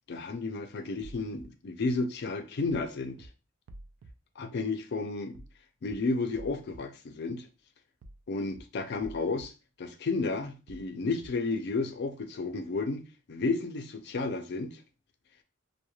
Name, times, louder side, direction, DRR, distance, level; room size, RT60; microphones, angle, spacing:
voice 1, 0.1-3.3 4.4-5.4 5.8-7.5 8.3-9.5 9.8-14.8, left 3 dB, 55° left, 0.4 m, -32 dB
sound 1, 1.0-1.4 2.7-2.9 3.2-3.3 3.7-4.1 5.3-5.5 5.8-5.9 6.3-6.8 8.0-8.2 8.5-8.6 9.0-9.4 10.7-10.9 11.2-11.3, right 1 dB, 85° right, 0.3 m, -48 dB
2.9 x 2.1 x 2.3 m
head